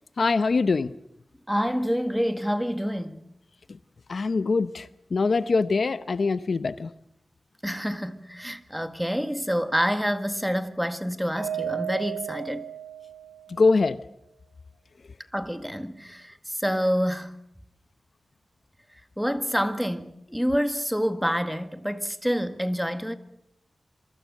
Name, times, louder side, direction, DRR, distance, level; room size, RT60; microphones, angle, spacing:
voice 1, 0.2-0.9 4.1-6.9 13.5-14.0, left 4 dB, 60° left, 0.8 m, -23 dB
voice 2, 1.5-3.2 7.6-12.7 15.3-17.4 19.2-23.1, equal, ahead, 1.8 m, -27 dB
Mallet percussion, 11.4-13.6, right 10 dB, 55° right, 7.7 m, -34 dB
27.5 x 23.5 x 6.5 m
wide cardioid pair, 95°, 0 cm